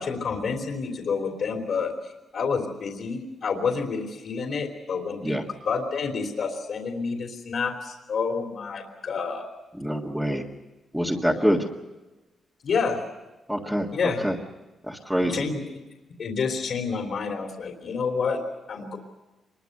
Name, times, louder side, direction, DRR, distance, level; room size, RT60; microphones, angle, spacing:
voice 1, 0.0-5.4 5.6-9.5 11.3-11.5 12.6-13.0 13.9-14.2 15.3-15.6 16.2-18.4 18.7-19.0, left 5 dB, 55° left, 2 dB, 3.2 m, -29 dB
voice 2, 9.7-10.4 10.9-11.7 13.5-14.4 14.8-15.5, equal, ahead, -3 dB, 1.8 m, -26 dB
25.0 x 22.0 x 6.7 m, 1.1 s
wide cardioid pair, 145°, 0 cm